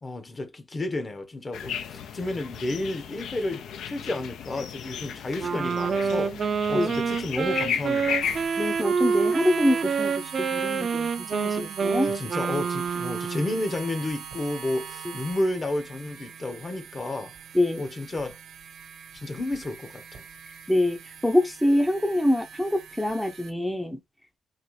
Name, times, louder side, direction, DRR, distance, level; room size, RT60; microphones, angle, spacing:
voice 1, 0.0-8.2 11.9-17.3 17.8-18.4 19.1-20.2, left 2 dB, 35° left, 0.9 m, -31 dB
sound 1, 1.5-8.4, left 8 dB, 85° left, 0.5 m, -34 dB
Wind instrument woodwind instrument, 5.4-13.6, right 5 dB, 50° right, 0.4 m, -27 dB
sound 2, 8.2-23.5, right 8 dB, 80° right, 1.0 m, -42 dB
voice 2, 8.6-12.1 17.5-17.8 20.7-24.0, left 1 dB, 5° left, 0.5 m, -25 dB
4.0 x 2.4 x 3.1 m
cardioid pair, 75°, 0 cm